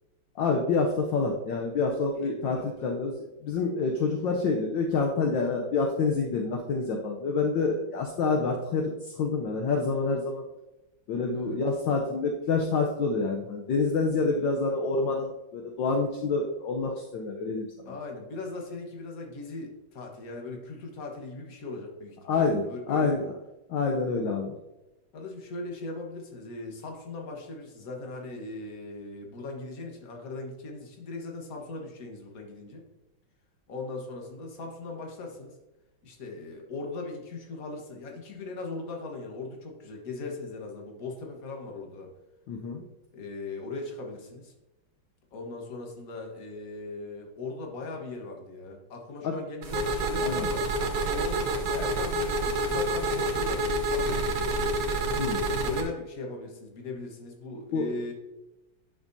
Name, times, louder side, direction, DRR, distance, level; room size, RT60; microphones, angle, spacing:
voice 1, 0.3-10.5 11.1-18.0 22.2-23.2 23.7-24.6 42.5-42.8 49.2-49.4 50.2-50.5 55.2-55.4 57.7-57.9, left 4 dB, 70° left, 1 dB, 1.4 m, -27 dB
voice 2, 2.1-2.9 11.3-11.6 17.8-23.3 25.1-32.8 33.7-35.5 36.0-42.1 43.1-44.5 45.3-50.7 51.1-54.6 55.2-58.1, left 3 dB, 45° left, 1 dB, 1.6 m, -39 dB
sound 1, 49.6-55.8, right 1 dB, 80° right, 1.9 m, -28 dB
10.0 x 6.1 x 2.7 m, 0.99 s
omnidirectional pair, 2.3 m